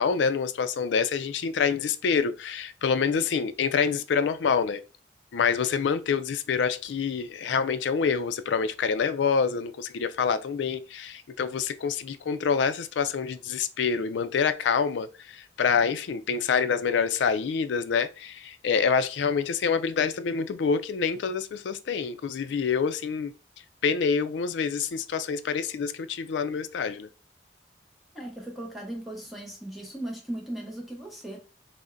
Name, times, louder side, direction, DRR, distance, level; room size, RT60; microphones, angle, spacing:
voice 1, 0.0-4.8 5.3-23.3 23.8-27.1, left 6 dB, 85° left, 0.4 m, -26 dB
voice 2, 28.1-31.4, right 1 dB, ahead, 0.7 m, -37 dB
4.9 x 2.1 x 2.5 m
head